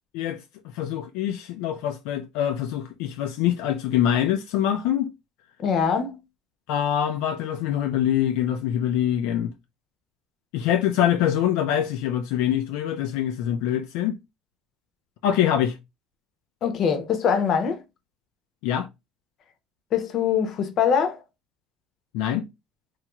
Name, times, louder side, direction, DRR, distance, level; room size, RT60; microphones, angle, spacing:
voice 1, 0.7-5.1 6.7-9.5 10.5-14.2 15.2-15.8 18.6-18.9 22.1-22.4, left 10 dB, 80° left, 0.4 m, -24 dB
voice 2, 5.6-6.2 16.6-17.8 19.9-21.2, left 7 dB, 45° left, 0.7 m, -23 dB
3.0 x 2.8 x 2.3 m
cardioid pair, 135°, 0 cm